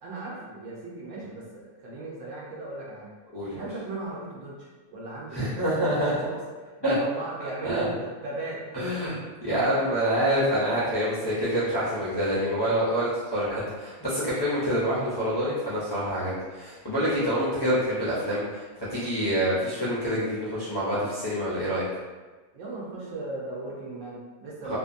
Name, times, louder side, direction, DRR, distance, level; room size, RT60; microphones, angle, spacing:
voice 1, 0.0-3.1 3.6-6.4 6.8-8.6 9.5-9.8 22.5-24.8, right 2 dB, 65° right, -5 dB, 0.9 m, -37 dB
voice 2, 5.3-6.1 6.8-7.0 7.4-7.9 8.7-21.8 24.7-24.8, equal, 40° left, -12 dB, 0.3 m, -27 dB
2.5 x 2.5 x 2.5 m, 1.4 s
omnidirectional pair, 1.5 m